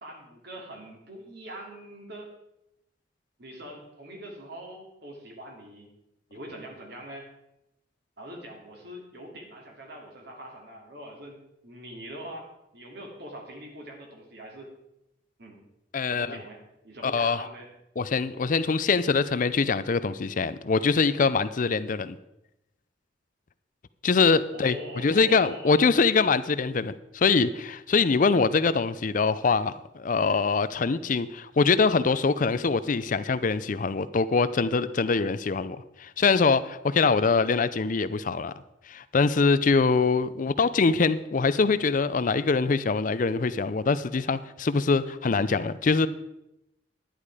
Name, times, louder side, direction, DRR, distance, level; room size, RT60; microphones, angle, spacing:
voice 1, 0.0-2.3 3.4-5.9 6.3-7.3 8.2-14.7 15.4-15.6 16.1-17.7 24.5-26.1, right 1 dB, 60° right, 1 dB, 2.8 m, -43 dB
voice 2, 15.9-16.4 17.0-17.5 18.0-22.2 24.0-24.8 25.0-38.5 38.9-46.1, left 4 dB, 45° left, 14 dB, 0.5 m, -24 dB
11.0 x 10.0 x 4.9 m, 0.88 s
head